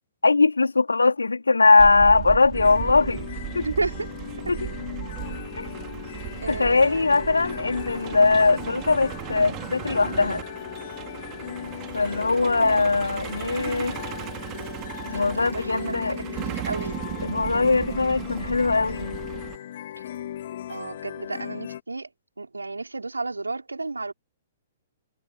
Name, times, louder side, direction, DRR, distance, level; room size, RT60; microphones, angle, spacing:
voice 1, 0.2-3.3 3.5-3.7 4.5-4.7 5.6-5.7 6.5-10.5 11.9-14.0 15.1-16.2 17.2-19.2, left 3 dB, 75° left, 3.8 m, -21 dB
Truck, 1.8-19.6, right 20 dB, 25° right, 4.0 m, -36 dB
sound 1, 2.5-21.8, left 11 dB, 50° left, 3.3 m, -37 dB
voice 2, 3.6-4.1 6.4-7.1 12.3-12.9 15.0-17.0 20.7-22.1 22.4-24.1, right 3 dB, 75° right, 4.1 m, -32 dB
figure-of-eight pair, 115°, 0 cm